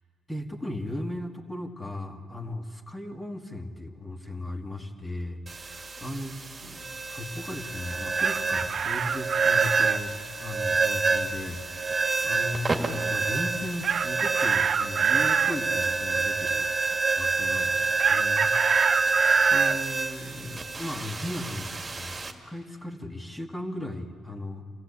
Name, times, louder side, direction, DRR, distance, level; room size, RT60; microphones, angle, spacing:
voice 1, 0.3-16.7 17.2-18.5 18.8-24.6, left 1 dB, 10° left, 3 dB, 2.2 m, -37 dB
sound 1, 5.5-22.3, right 3 dB, 30° right, 2.2 m, -28 dB
Chicken rooster, 7.9-10.0 13.8-15.6 18.0-19.8, right 7 dB, 55° right, 0.6 m, -26 dB
27.5 x 15.5 x 8.5 m, 2.1 s
cardioid pair, 90°, 0 cm